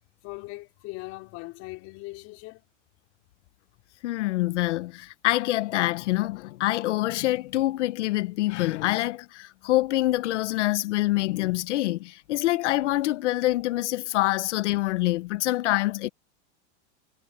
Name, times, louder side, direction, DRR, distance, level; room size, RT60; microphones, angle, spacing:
voice 1, 0.2-2.6, left 22 dB, 45° left, 5.0 m, -40 dB
voice 2, 4.0-16.1, left 17 dB, 85° left, 0.9 m, -26 dB
supercardioid pair, 150°, 34 cm